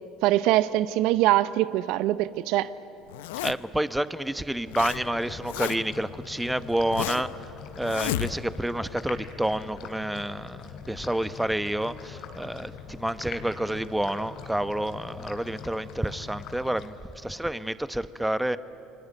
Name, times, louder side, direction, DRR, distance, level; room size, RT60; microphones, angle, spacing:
voice 1, 0.2-2.7, right 15 dB, 70° right, 16 dB, 0.7 m, -23 dB
Zipper (clothing), 3.1-3.8 4.4-5.0 5.2-6.0 6.5-7.4 7.8-8.6, left 14 dB, 85° left, 0.6 m, -32 dB
voice 2, 3.4-7.3 7.8-18.6, right 1 dB, 5° right, 14 dB, 1.0 m, -29 dB
sound 1, 4.7-17.4, left 7 dB, 60° left, 2.7 m, -43 dB
28.0 x 23.0 x 9.2 m, 2.8 s
hypercardioid pair, 75°, 0 cm